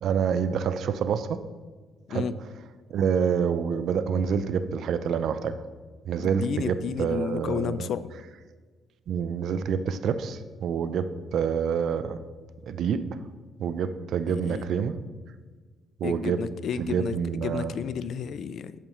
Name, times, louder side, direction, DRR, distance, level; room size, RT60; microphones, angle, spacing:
voice 1, 0.0-1.4 2.1-2.3 2.9-5.6 6.1-7.9 9.1-12.2 12.6-13.2 13.6-15.0 16.0-16.4 16.8-17.8, right 7 dB, 70° right, 12 dB, 0.5 m, -27 dB
voice 2, 6.2-8.1 14.3-14.6 16.0-18.8, left 7 dB, 65° left, 15 dB, 0.3 m, -32 dB
8.8 x 6.9 x 3.1 m, 1.4 s
cardioid pair, 90°, 0 cm